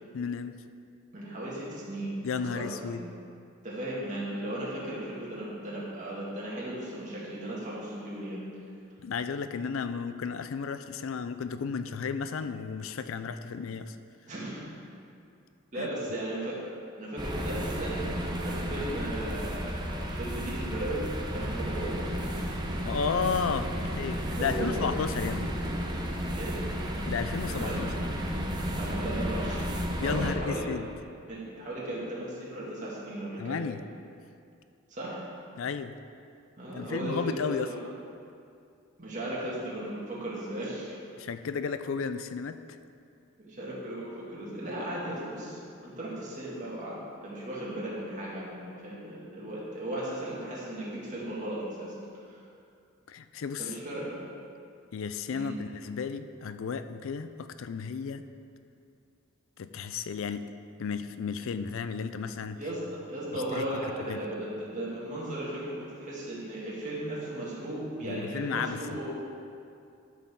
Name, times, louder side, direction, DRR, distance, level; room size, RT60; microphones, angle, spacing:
voice 1, 0.1-0.6 2.2-3.0 9.0-14.0 15.8-15.9 22.8-25.6 27.1-27.9 30.0-30.9 33.4-33.8 35.6-36.0 36.7-37.7 41.2-42.6 53.1-53.7 54.9-58.2 59.6-60.5 60.8-62.6 63.3-63.6 64.1-64.2 68.0-68.8, left 5 dB, 75° left, 11 dB, 0.4 m, -33 dB
voice 2, 1.1-3.0 3.6-8.4 14.3-14.7 15.7-16.6 17.0-18.1 18.4-22.0 24.3-24.9 26.4-26.6 27.5-27.8 28.7-30.7 31.3-33.6 34.9-35.2 36.6-37.8 39.0-41.0 43.4-47.0 47.2-51.9 53.6-54.2 55.3-55.5 62.5-69.1, right 1 dB, 35° right, -7 dB, 2.3 m, -36 dB
sound 1, 17.2-30.3, equal, 20° right, 0.8 m, -33 dB
12.5 x 6.1 x 3.8 m, 2.5 s
head